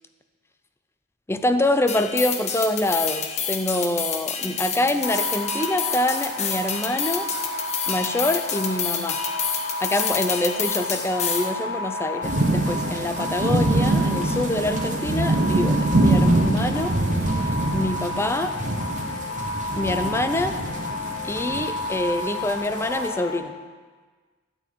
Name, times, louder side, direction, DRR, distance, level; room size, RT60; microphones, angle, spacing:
voice 1, 1.3-7.3 7.9-9.2 9.8-16.9 17.2-17.3 17.7-18.5 19.8-20.5 21.2-23.5, left 1 dB, 10° left, 8 dB, 0.5 m, -25 dB
sound 1, 1.9-11.5, left 7 dB, 35° left, 0.9 m, -29 dB
sound 2, 5.0-23.4, left 2 dB, 90° left, 0.9 m, -32 dB
sound 3, 12.2-23.1, right 2 dB, 40° right, 1.1 m, -24 dB
12.5 x 4.4 x 8.2 m, 1.5 s
head